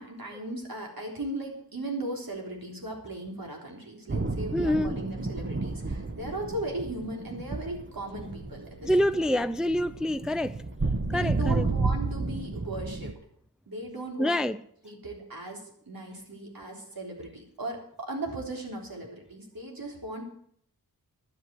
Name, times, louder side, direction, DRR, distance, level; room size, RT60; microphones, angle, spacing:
voice 1, 0.0-9.4 11.0-13.1 13.7-14.4 14.8-20.2, right 1 dB, 65° right, 3.9 m, -37 dB
sound 1, 4.1-13.1, right 3 dB, 30° right, 1.1 m, -32 dB
voice 2, 4.5-5.0 8.8-10.6 11.1-11.7 14.2-14.6, left 1 dB, ahead, 0.4 m, -26 dB
11.5 x 8.6 x 7.7 m
wide cardioid pair, 60°, 38 cm